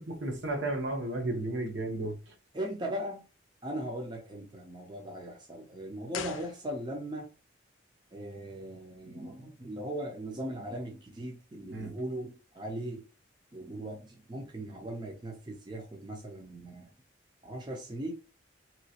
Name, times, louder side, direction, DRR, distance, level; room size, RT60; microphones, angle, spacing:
voice 1, 0.1-2.3 11.7-11.9, right 2 dB, 65° right, 0.8 m, -33 dB
voice 2, 2.5-3.2 3.6-7.3 8.1-13.0 13.5-16.9 17.4-18.1, right 1 dB, 25° right, 0.5 m, -39 dB
sound 1, 6.1-7.2 7.4-7.5, left 8 dB, 85° left, 0.4 m, -42 dB
3.2 x 3.0 x 2.8 m
head